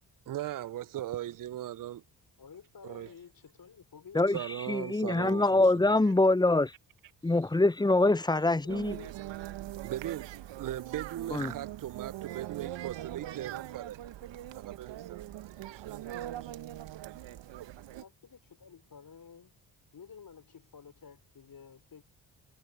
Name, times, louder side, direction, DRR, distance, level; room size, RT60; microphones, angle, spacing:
voice 1, 0.3-2.0 2.8-3.1 4.3-5.6 9.8-16.5, right 12 dB, 40° right, 0.7 m, -39 dB
voice 2, 2.4-4.4 8.0-9.1 18.0-19.5 19.9-22.0, left 6 dB, 45° left, 4.7 m, -52 dB
voice 3, 4.7-6.7 7.2-9.0 11.3-11.5, left 2 dB, 10° left, 0.8 m, -24 dB
sound 1, 8.7-18.0, right 13 dB, 65° right, 1.3 m, -42 dB
hypercardioid pair, 45°, 48 cm